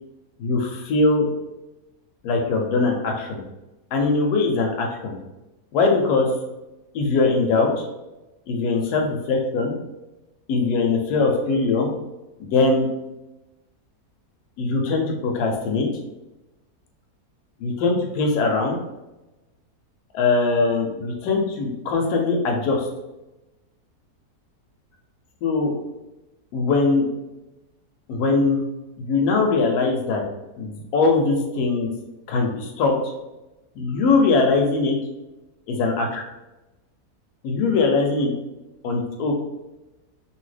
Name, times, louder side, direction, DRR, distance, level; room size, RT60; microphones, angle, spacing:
voice 1, 0.4-1.3 2.2-3.4 3.9-5.2 5.7-6.3 6.9-7.7 8.5-9.7 10.5-11.9 12.4-12.9 14.6-15.9 17.6-18.8 20.1-22.9 25.4-25.7 26.5-27.0 28.1-28.6 29.0-30.2 30.6-31.9 32.3-33.0 33.8-35.0 35.7-36.2 37.4-38.3 38.8-39.3, left 3 dB, 90° left, 1 dB, 1.1 m, -21 dB
2.8 x 2.7 x 3.2 m, 1.0 s
omnidirectional pair, 1.6 m